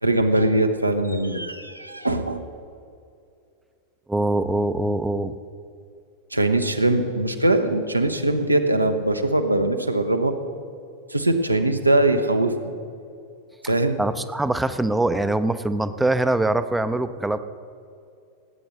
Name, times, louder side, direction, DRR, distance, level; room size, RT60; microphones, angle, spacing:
voice 1, 0.0-2.4 6.3-10.3 11.1-12.5 13.6-14.0, right 1 dB, 85° right, 6 dB, 1.0 m, -21 dB
voice 2, 4.1-5.3 14.0-17.4, right 2 dB, 5° right, 11 dB, 0.6 m, -23 dB
17.5 x 8.8 x 6.4 m, 2.5 s
figure-of-eight pair, 90°, 0 cm